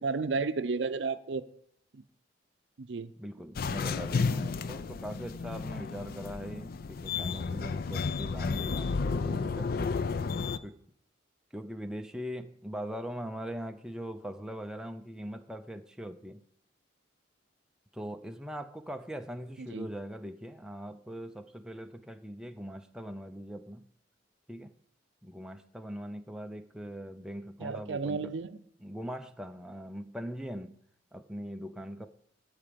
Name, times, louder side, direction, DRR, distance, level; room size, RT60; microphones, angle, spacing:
voice 1, 0.0-1.4 1.9-2.0 2.8-3.1 19.6-19.9 27.6-28.6, right 4 dB, 70° right, 0.5 m, -32 dB
voice 2, 3.2-10.2 10.6-10.8 11.5-16.4 17.9-23.9 24.5-24.7 25.2-28.3 28.8-30.8 31.1-32.1, equal, 5° right, 0.4 m, -41 dB
sound 1, 3.6-10.6, left 4 dB, 50° left, 0.4 m, -32 dB
14.5 x 4.9 x 5.1 m
head